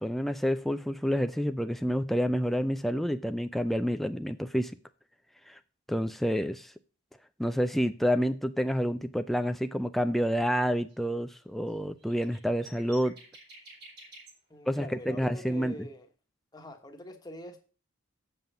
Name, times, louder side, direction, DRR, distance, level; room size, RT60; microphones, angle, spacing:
voice 1, 0.0-4.7 5.5-5.6 5.9-6.7 7.4-13.1 14.7-15.7, equal, ahead, 0.4 m, -28 dB
sound 1, 10.5-10.6 10.9-11.0 11.3-11.4 11.7-11.8 12.0-14.3, right 2 dB, 50° right, 3.0 m, -51 dB
voice 2, 14.5-16.1 16.5-17.6, equal, 20° left, 1.2 m, -44 dB
7.7 x 5.5 x 7.0 m
head